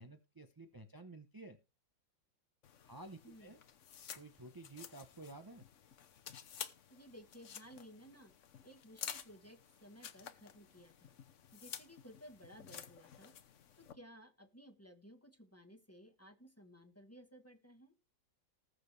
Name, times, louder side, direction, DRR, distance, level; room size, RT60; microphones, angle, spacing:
voice 1, 0.0-1.6 2.8-3.6 4.2-5.6, right 2 dB, 30° right, 6 dB, 0.4 m, -52 dB
sound 1, 2.6-13.9, left 8 dB, 50° left, 1.0 m, -52 dB
voice 2, 6.9-8.3 8.6-11.2 11.5-13.3 13.7-18.0, equal, 10° left, 7 dB, 1.0 m, -57 dB
19.5 x 6.5 x 3.3 m, 0.29 s
omnidirectional pair, 2.0 m